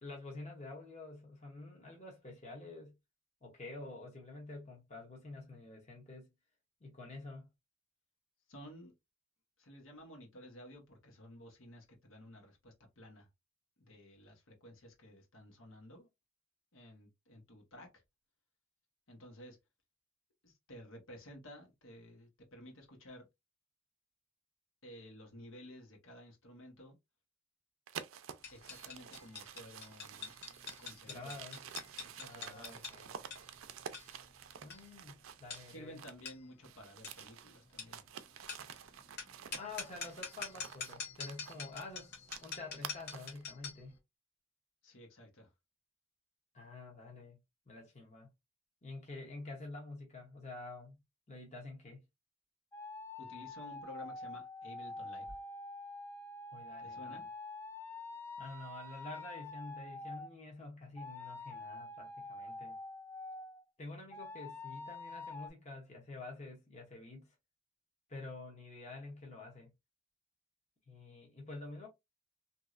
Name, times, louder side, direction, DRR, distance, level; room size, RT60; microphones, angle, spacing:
voice 1, 0.0-2.9 3.4-6.3 6.8-7.5 31.1-31.6 32.2-33.1 34.6-35.1 35.4-36.0 39.5-44.0 46.5-47.4 47.7-48.3 48.8-51.0 51.3-52.0 56.5-57.2 58.4-62.7 63.8-67.3 68.1-69.7 70.9-71.9, left 2 dB, 35° left, 0.8 m, -48 dB
voice 2, 8.5-8.9 9.6-13.3 13.8-16.1 16.7-18.0 19.1-19.6 20.4-23.3 24.8-27.0 28.5-30.3 30.8-31.4 32.0-32.9 35.7-38.0 44.8-45.5 53.2-55.4 56.8-57.3, equal, 85° left, 1.2 m, -53 dB
sound 1, 27.9-36.3 36.6-43.4, right 8 dB, 90° right, 0.4 m, -50 dB
sound 2, 28.4-43.9, left 5 dB, 55° left, 1.1 m, -47 dB
sound 3, 52.7-60.3 61.0-63.6 64.1-65.5, left 2 dB, 10° left, 0.4 m, -46 dB
3.1 x 2.7 x 2.4 m
head